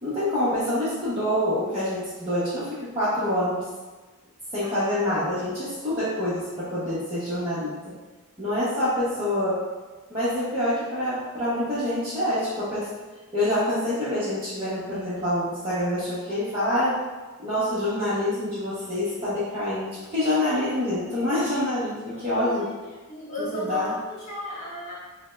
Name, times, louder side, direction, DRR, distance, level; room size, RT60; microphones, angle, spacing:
voice 1, 0.0-3.7 4.5-8.0 8.4-9.6 10.1-12.9 13.3-17.0 17.4-22.7 23.4-24.0, left 1 dB, 25° right, -13 dB, 0.8 m, -26 dB
voice 2, 22.3-22.7 23.1-24.9, left 1 dB, 35° left, -7 dB, 1.1 m, -34 dB
3.3 x 2.1 x 3.2 m, 1.3 s
head